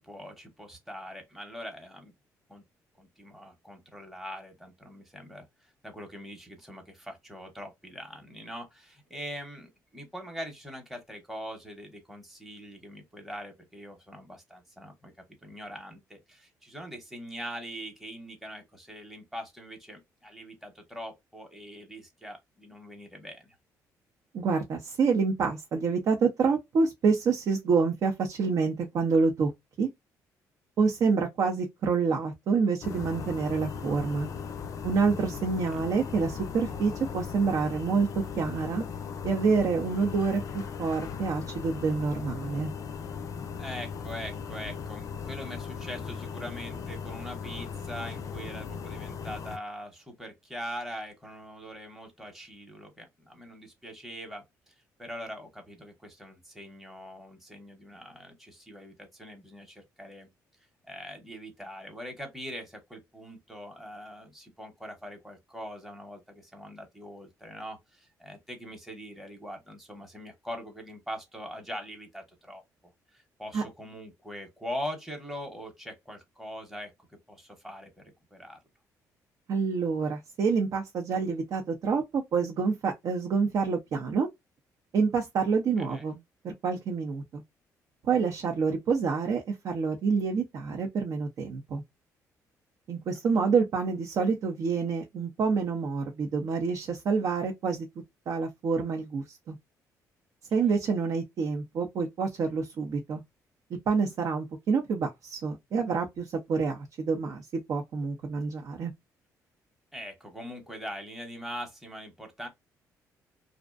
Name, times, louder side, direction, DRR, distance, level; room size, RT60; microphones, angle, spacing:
voice 1, 0.0-2.1 2.5-2.6 3.0-5.4 5.8-15.1 15.4-23.6 35.3-35.4 35.6-35.8 43.6-60.3 60.8-72.6 73.1-76.9 77.3-78.6 85.8-86.0 100.5-100.7 109.9-112.5, equal, ahead, 0.8 m, -42 dB
voice 2, 24.3-29.5 29.8-29.9 30.8-34.3 34.8-38.8 39.2-42.7 73.5-73.6 79.5-84.3 84.9-86.2 86.4-87.4 88.0-91.8 92.9-97.9 98.3-99.6 100.5-103.2 103.9-108.9, right 5 dB, 60° right, 0.6 m, -27 dB
sound 1, 32.8-49.6, left 6 dB, 50° left, 0.4 m, -38 dB
2.5 x 2.1 x 2.4 m
cardioid pair, 90°, 7 cm